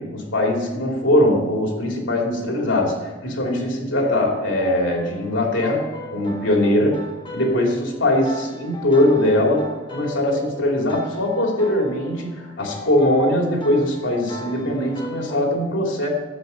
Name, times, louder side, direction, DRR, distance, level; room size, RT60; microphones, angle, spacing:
voice 1, 0.0-7.1 7.3-9.7 9.9-16.1, left 1 dB, 70° left, 0 dB, 3.0 m, -21 dB
sound 1, 4.1-15.3, left 1 dB, 25° left, 1.7 m, -38 dB
10.5 x 8.2 x 5.8 m, 1.2 s
head